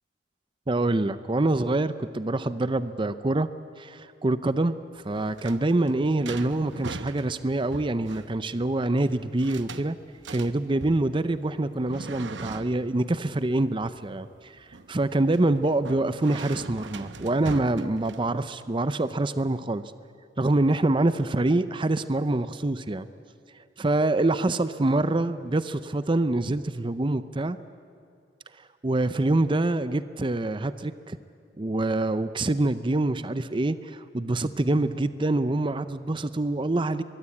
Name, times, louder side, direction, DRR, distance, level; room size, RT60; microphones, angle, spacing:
voice 1, 0.7-3.5 3.8-10.0 10.3-19.9 20.4-23.1 23.6-27.6 28.8-31.2 31.6-37.0, right 2 dB, 25° right, 13 dB, 0.6 m, -25 dB
sound 1, 5.0-18.6, right 3 dB, 75° right, 0.9 m, -42 dB
23.0 x 22.5 x 8.5 m, 2.3 s
head